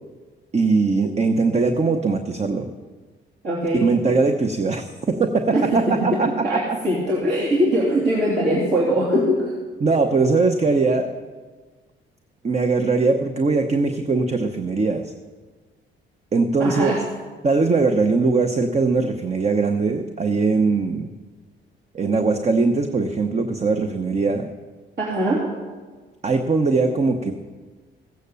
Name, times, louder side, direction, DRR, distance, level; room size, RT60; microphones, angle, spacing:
voice 1, 0.5-2.7 3.7-6.8 9.8-11.1 12.4-15.1 16.3-17.0 17.4-21.1 21.9-24.5 26.2-27.3, right 3 dB, 35° right, 6 dB, 0.9 m, -21 dB
voice 2, 3.4-3.9 5.5-9.5 16.6-17.0 25.0-25.4, equal, 55° right, -6 dB, 3.2 m, -21 dB
15.5 x 8.0 x 6.9 m, 1.4 s
cardioid pair, 90°, 20 cm